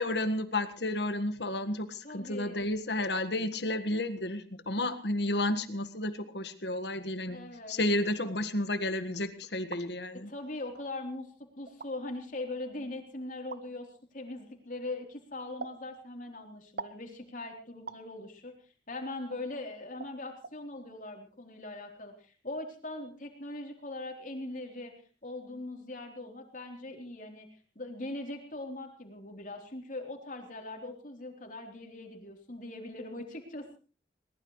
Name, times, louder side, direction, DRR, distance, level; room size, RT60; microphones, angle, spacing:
voice 1, 0.0-10.3, left 1 dB, 75° left, 10 dB, 1.7 m, -32 dB
voice 2, 2.0-2.7 6.9-7.8 10.1-18.5 18.9-24.9 25.2-33.8, left 2 dB, 50° left, 3 dB, 3.8 m, -41 dB
sound 1, 9.4-9.9 10.8-10.9 11.7-11.9 13.5-13.6 15.6-15.8 16.8-17.0 17.9-18.1 19.3-19.4 20.0-20.2 20.4-20.6, right 4 dB, 60° right, 0.8 m, -42 dB
22.0 x 20.0 x 3.3 m, 0.37 s
head